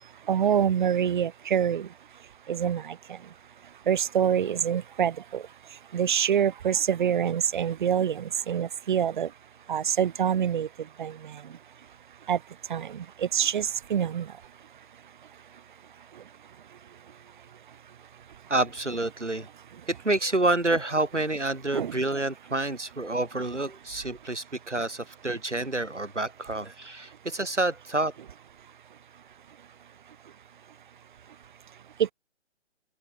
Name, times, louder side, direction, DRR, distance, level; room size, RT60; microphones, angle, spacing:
voice 1, 0.3-1.9 2.5-3.0 3.9-5.4 5.9-9.3 9.7-10.7 11.0-11.1 12.3-12.4 12.7-13.0 13.3-14.3 21.7-21.9, right 9 dB, 45° right, 1.9 m, -25 dB
voice 2, 18.5-19.5 19.9-28.1, right 2 dB, 90° right, 4.1 m, -28 dB
open air
figure-of-eight pair, 140°, 35 cm